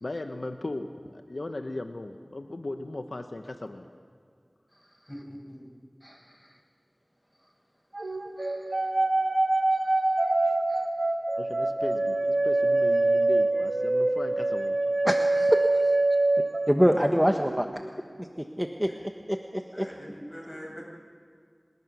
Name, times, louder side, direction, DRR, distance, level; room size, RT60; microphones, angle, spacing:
voice 1, 0.0-3.9 11.4-14.8, left 2 dB, 75° left, 6 dB, 1.1 m, -37 dB
voice 2, 5.1-5.6 16.8-17.0 19.7-20.8, equal, 15° left, -1 dB, 6.6 m, -42 dB
sound 1, 7.9-17.1 17.4-17.6, right 2 dB, 75° right, 1.4 m, -25 dB
voice 3, 15.0-15.7 16.7-17.7 18.2-18.9 19.3-19.9, equal, 5° right, 4 dB, 1.1 m, -25 dB
26.5 x 19.5 x 6.2 m, 2.2 s
wide cardioid pair, 50°, 0 cm